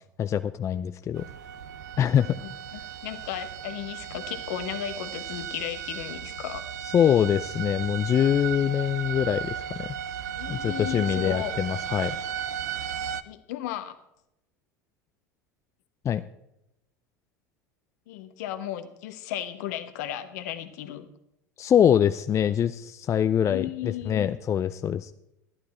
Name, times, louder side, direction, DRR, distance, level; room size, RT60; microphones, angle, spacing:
voice 1, 0.2-1.3 2.0-2.4 6.9-10.0 10.5-12.2 16.0-16.2 21.6-25.1, left 9 dB, 30° left, 11 dB, 0.5 m, -24 dB
sound 1, 1.1-13.2, right 9 dB, 80° right, 0.6 m, -35 dB
voice 2, 2.4-6.6 10.4-11.5 13.2-14.0 18.1-21.1 23.4-24.3, left 12 dB, 70° left, 9 dB, 1.1 m, -35 dB
12.0 x 11.5 x 4.3 m, 0.85 s
hypercardioid pair, 80°, 9 cm